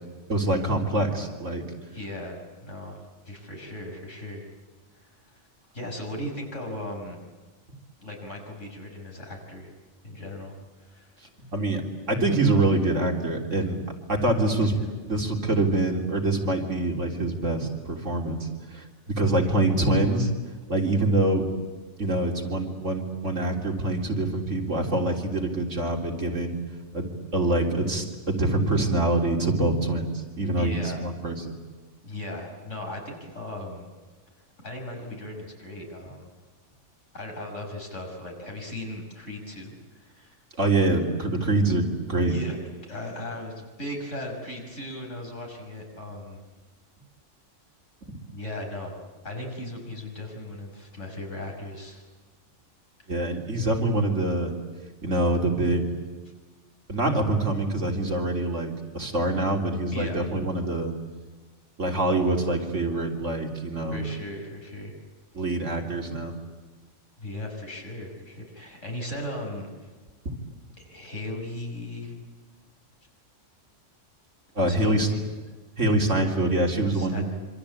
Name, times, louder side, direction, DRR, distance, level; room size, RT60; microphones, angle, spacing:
voice 1, 0.3-1.6 11.4-13.8 14.1-14.8 15.1-20.3 20.7-21.5 22.0-26.6 26.9-31.6 40.6-42.3 48.1-48.2 53.1-54.5 55.0-55.9 56.9-60.9 61.8-64.0 65.3-66.3 74.6-75.1 75.8-77.3, right 2 dB, 75° right, 1 dB, 3.8 m, -25 dB
voice 2, 1.9-4.5 4.9-5.4 5.7-7.2 8.0-9.7 10.0-11.1 14.5-14.9 19.5-19.8 30.5-31.0 32.0-33.9 34.6-36.3 37.1-40.4 42.3-42.6 42.8-46.4 48.3-48.9 49.2-52.0 59.9-60.2 63.9-64.9 67.2-69.7 70.8-72.2 74.6-75.3 76.9-77.3, left 1 dB, 75° left, 1 dB, 6.4 m, -37 dB
26.0 x 26.0 x 8.6 m, 1.4 s
omnidirectional pair, 1.3 m